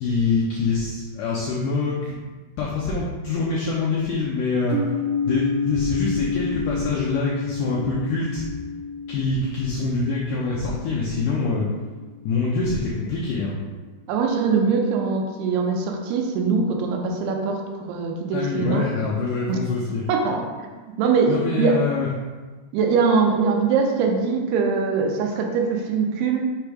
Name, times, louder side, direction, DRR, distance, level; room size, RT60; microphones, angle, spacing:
voice 1, 0.0-2.2 2.6-4.8 5.2-8.5 9.1-11.7 12.2-13.6 18.3-20.0 21.3-22.1, left 4 dB, 85° left, -4 dB, 1.8 m, -25 dB
sound 1, 4.7-12.5, left 4 dB, 65° right, 3.0 m, -30 dB
voice 2, 14.1-17.6 17.9-18.8 19.5-19.6 20.1-20.4 21.0-21.8 22.7-26.4, right 5 dB, 85° right, 1 dB, 2.8 m, -22 dB
6.8 x 3.5 x 4.7 m, 1.4 s
omnidirectional pair, 4.6 m